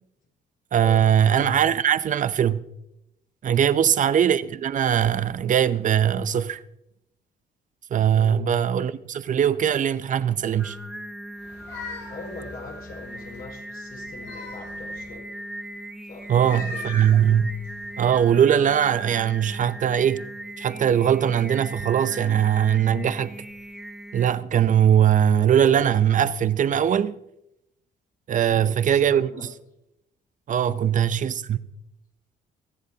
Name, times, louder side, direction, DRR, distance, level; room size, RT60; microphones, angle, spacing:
voice 1, 0.7-2.6 3.4-6.6 7.9-10.8 16.3-17.5 18.0-20.3 20.6-23.4 24.1-27.2 28.3-29.3 30.5-31.6, right 9 dB, 45° right, 0.7 m, -21 dB
voice 2, 8.1-8.4 12.1-15.3 16.0-16.8 28.4-29.4 30.5-30.8, left 4 dB, 55° left, 5.5 m, -41 dB
Singing, 10.2-24.3, right 1 dB, ahead, 0.7 m, -39 dB
sound 1, 11.4-13.5 13.9-15.1 16.3-18.1, left 4 dB, 85° left, 7.4 m, -41 dB
23.5 x 14.5 x 2.9 m
cardioid pair, 120°, 18 cm